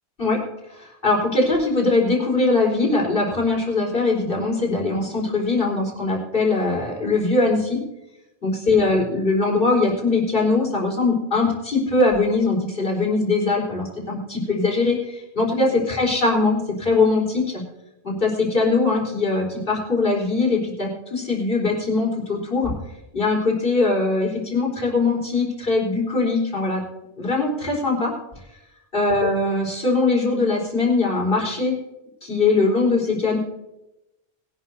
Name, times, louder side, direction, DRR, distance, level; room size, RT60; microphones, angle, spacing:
voice 1, 0.7-7.8 8.4-17.6 18.0-22.7 23.1-26.8 27.2-28.1 28.9-31.7 32.2-33.4, left 3 dB, 50° left, -1 dB, 4.4 m, -21 dB
21.5 x 11.5 x 2.7 m, 0.90 s
omnidirectional pair, 1.2 m